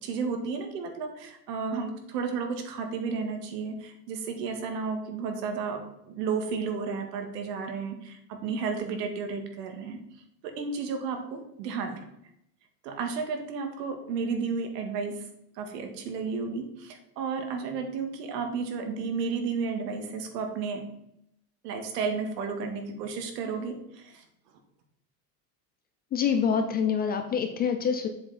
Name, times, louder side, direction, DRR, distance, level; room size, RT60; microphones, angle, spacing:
voice 1, 0.0-10.0 10.4-12.0 12.8-15.2 15.6-20.8 21.6-24.2, right 5 dB, 75° right, 5 dB, 2.0 m, -32 dB
voice 2, 26.1-28.1, left 7 dB, 20° left, 7 dB, 0.4 m, -26 dB
7.5 x 6.8 x 4.2 m, 0.79 s
supercardioid pair, 130°, 49 cm